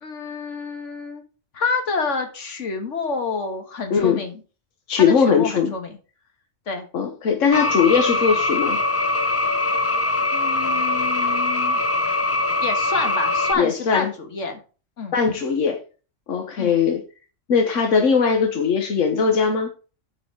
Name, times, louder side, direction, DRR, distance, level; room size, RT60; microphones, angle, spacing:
voice 1, 0.0-1.2 1.5-4.4 5.0-6.0 6.7-6.9 10.3-11.8 12.6-14.6 15.0-15.1 16.6-16.7, left 4 dB, 75° left, 6 dB, 1.9 m, -28 dB
voice 2, 3.9-4.2 4.9-5.7 6.9-8.8 13.6-14.1 15.1-15.8 16.3-17.0 17.5-19.7, left 6 dB, 90° left, 5 dB, 1.4 m, -19 dB
sound 1, 7.5-13.5, left 2 dB, 25° left, 0.3 m, -22 dB
8.6 x 4.8 x 4.7 m, 0.35 s
omnidirectional pair, 1.3 m